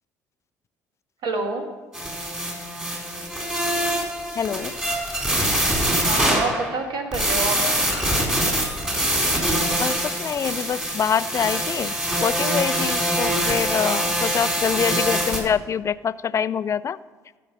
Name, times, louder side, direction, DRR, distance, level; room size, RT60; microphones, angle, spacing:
voice 1, 1.2-1.7 6.0-7.6 13.7-14.1, right 3 dB, 60° right, 4 dB, 1.6 m, -28 dB
sound 1, 1.9-6.9 7.1-15.4, right 1 dB, 10° right, 3.9 m, -24 dB
voice 2, 4.4-4.7 9.8-11.9 12.2-17.0, left 7 dB, 35° left, 17 dB, 0.4 m, -25 dB
13.0 x 5.0 x 7.1 m, 1.3 s
hypercardioid pair, 60°, 8 cm